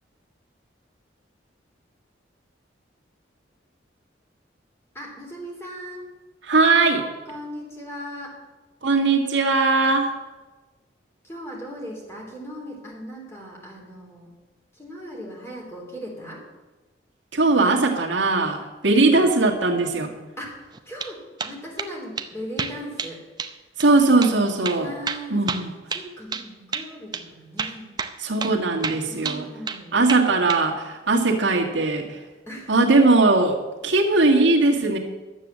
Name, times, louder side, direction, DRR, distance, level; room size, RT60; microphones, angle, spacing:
voice 1, 4.9-6.1 7.2-8.3 11.2-14.3 14.7-16.4 18.9-19.3 20.4-23.2 24.8-25.4 25.9-27.9 29.0-30.0 32.5-33.1, equal, 15° left, -2 dB, 3.3 m, -38 dB
voice 2, 6.4-7.0 8.8-10.1 17.3-20.1 23.8-24.9 25.3-25.7 28.2-29.4 29.9-32.2 32.7-33.6 33.8-35.0, right 3 dB, 75° right, 0 dB, 1.9 m, -19 dB
sound 1, 20.7-21.1 21.4-21.9 22.2-22.3 22.6-23.1 23.4-23.5 23.8-23.9 24.2-24.4 24.6-26.5 26.7-26.9 27.1-27.2 27.6-28.1 28.4-28.6 28.8-29.8 30.1-30.6, right 5 dB, 20° right, 0.6 m, -30 dB
12.0 x 7.8 x 7.4 m, 1.2 s
head